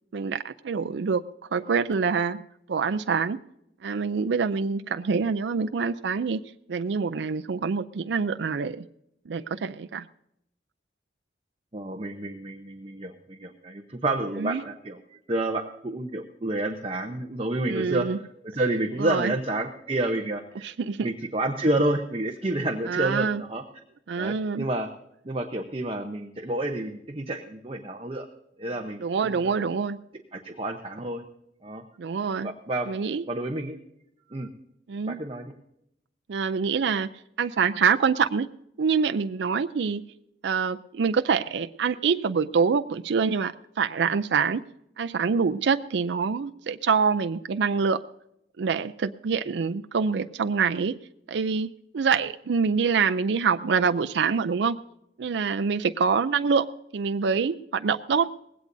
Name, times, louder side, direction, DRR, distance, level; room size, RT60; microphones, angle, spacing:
voice 1, 0.1-1.3 1.5-3.4 3.8-6.4 6.7-8.9 9.3-10.1 14.4-14.6 17.7-18.2 19.0-19.3 20.6-21.1 22.9-23.4 24.1-24.7 29.0-30.0 32.0-32.5 32.9-33.2 34.9-35.2 36.3-37.1 37.4-38.5 38.8-40.0 40.4-44.6 45.0-48.0 48.6-51.0 51.3-54.8 55.2-56.7 56.9-58.3, right 5 dB, 70° right, 9 dB, 0.4 m, -25 dB
voice 2, 11.7-18.1 18.4-20.4 21.0-23.6 24.2-24.9 25.2-28.3 28.6-29.5 30.3-31.2 31.6-31.8 32.4-32.9 33.3-33.8 34.3-34.5 35.0-35.5, right 1 dB, 30° right, 3 dB, 0.8 m, -29 dB
19.0 x 16.5 x 2.7 m, 0.79 s
head